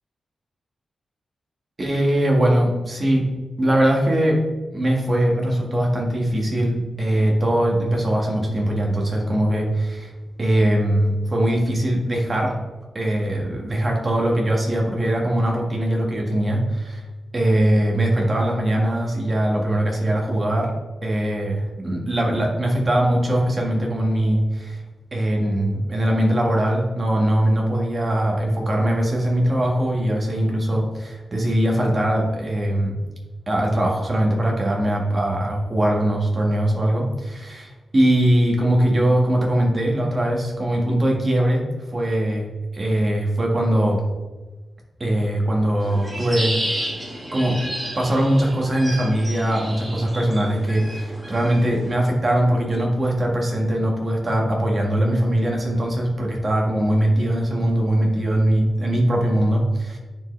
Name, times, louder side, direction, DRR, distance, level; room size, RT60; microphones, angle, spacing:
voice 1, 1.8-3.3 3.6-4.4 4.7-10.1 10.4-12.6 12.9-17.1 17.3-20.7 21.0-24.8 25.1-33.0 33.5-41.6 41.9-42.5 42.7-44.0 45.0-46.8 47.3-47.6 48.0-60.0, right 1 dB, 30° right, -1 dB, 1.8 m, -21 dB
sound 1, 45.8-51.9, right 1 dB, 15° right, 1.8 m, -32 dB
10.0 x 4.8 x 3.4 m, 1.2 s
wide cardioid pair, 120°, 0 cm